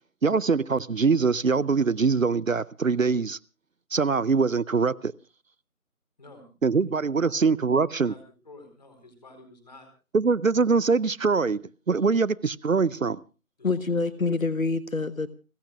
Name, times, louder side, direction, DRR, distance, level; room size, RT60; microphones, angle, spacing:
voice 1, 0.2-3.4 3.9-5.1 6.6-8.1 10.1-11.6 11.9-13.2, right 4 dB, 65° right, 0.7 m, -23 dB
voice 2, 6.2-6.5 7.2-7.4 8.0-9.9 13.6-13.7, left 2 dB, 30° left, 4.3 m, -50 dB
voice 3, 13.6-15.3, left 3 dB, 65° left, 1.2 m, -26 dB
30.0 x 14.5 x 2.4 m
figure-of-eight pair, 165°, 43 cm